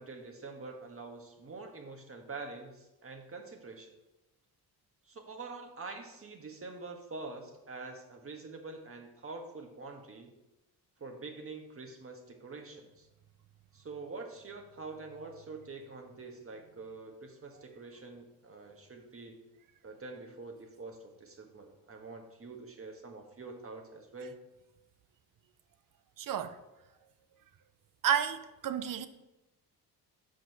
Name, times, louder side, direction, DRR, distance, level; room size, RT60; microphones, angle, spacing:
voice 1, 0.0-3.9 5.0-10.3 11.0-13.1 13.7-19.4 19.8-24.4, right 3 dB, 35° right, 1.4 m, -46 dB
voice 2, 26.2-26.6 28.0-29.1, right 9 dB, 55° right, 0.7 m, -31 dB
6.1 x 5.0 x 6.0 m
cardioid pair, 75°, 40 cm